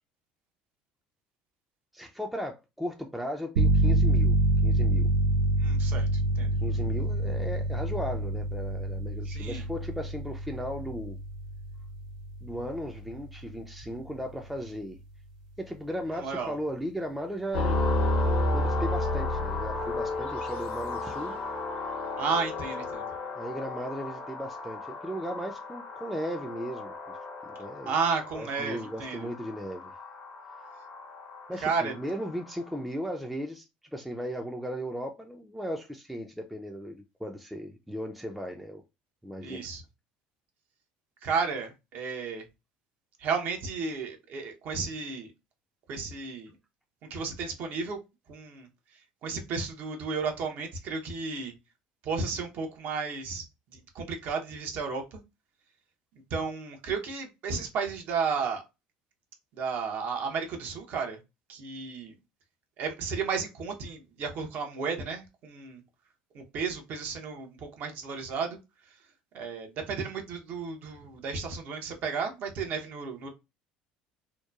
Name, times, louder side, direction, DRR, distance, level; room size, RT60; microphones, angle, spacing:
voice 1, 1.9-4.4 4.6-5.1 6.6-11.2 12.4-15.0 15.6-17.8 18.5-21.4 23.3-26.9 27.4-27.9 28.3-29.9 31.5-33.6 33.9-38.8 39.2-39.7, equal, 5° right, 0.4 m, -36 dB
sound 1, 3.6-14.1, right 1 dB, 85° right, 0.4 m, -27 dB
voice 2, 5.6-6.6 9.3-9.6 16.2-16.5 22.2-23.1 27.9-29.3 31.6-31.9 39.4-39.8 41.2-42.4 43.2-45.3 45.9-46.5 47.1-48.0 48.3-48.7 49.2-51.5 52.0-53.4 53.9-55.2 56.3-58.6 59.5-61.2 61.5-62.2 62.8-65.8 66.3-68.6 69.3-73.3, right 5 dB, 60° right, 0.8 m, -33 dB
sound 2, 17.5-32.6, left 2 dB, 75° left, 0.8 m, -33 dB
2.9 x 2.1 x 2.3 m
hypercardioid pair, 80°, 4 cm